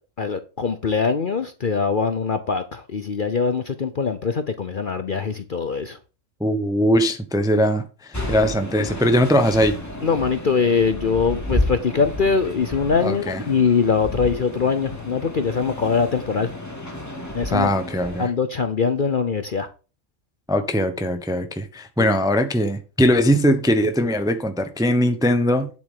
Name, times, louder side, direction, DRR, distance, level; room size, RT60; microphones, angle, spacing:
voice 1, 0.2-6.0 10.0-16.5 17.3-17.7 18.2-19.7 22.0-22.1, left 5 dB, 45° left, 0.9 m, -22 dB
voice 2, 6.4-9.8 13.0-13.4 17.5-18.3 20.5-25.7, equal, 5° right, 0.9 m, -20 dB
sound 1, 8.1-18.3, left 1 dB, 10° left, 2.1 m, -31 dB
9.7 x 7.7 x 3.8 m
omnidirectional pair, 1.4 m